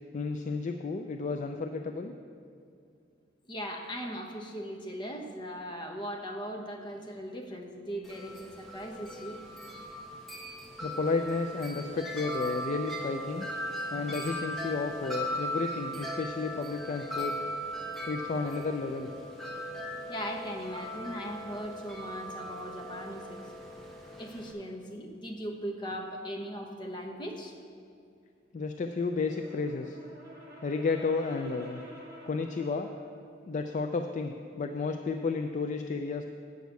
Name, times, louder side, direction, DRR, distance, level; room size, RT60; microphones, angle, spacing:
voice 1, 0.1-2.1 10.8-13.5 13.9-17.4 18.1-19.1 28.5-30.0 30.6-31.8 32.3-32.9 33.5-36.2, left 4 dB, 45° left, 6 dB, 0.4 m, -32 dB
voice 2, 3.5-9.4 20.1-23.5 24.2-27.6, equal, 25° left, 2 dB, 1.0 m, -39 dB
Wind chime, 8.0-24.5, equal, ahead, 1.2 m, -39 dB
Brass instrument, 29.1-33.2, right 1 dB, 20° right, 2.2 m, -50 dB
8.3 x 6.3 x 8.1 m, 2.5 s
head